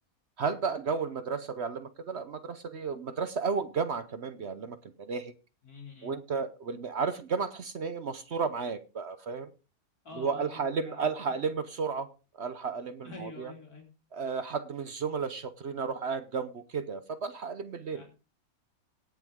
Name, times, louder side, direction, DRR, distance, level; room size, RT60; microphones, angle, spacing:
voice 1, 0.4-5.3 6.0-9.5 10.1-12.0 12.4-13.5 14.1-18.0, right 5 dB, 55° right, 12 dB, 1.0 m, -33 dB
voice 2, 5.6-6.1 10.0-11.0 13.0-13.9 17.9-18.0, left 3 dB, 85° left, 0 dB, 3.5 m, -46 dB
18.5 x 7.0 x 3.6 m, 0.31 s
omnidirectional pair, 1.5 m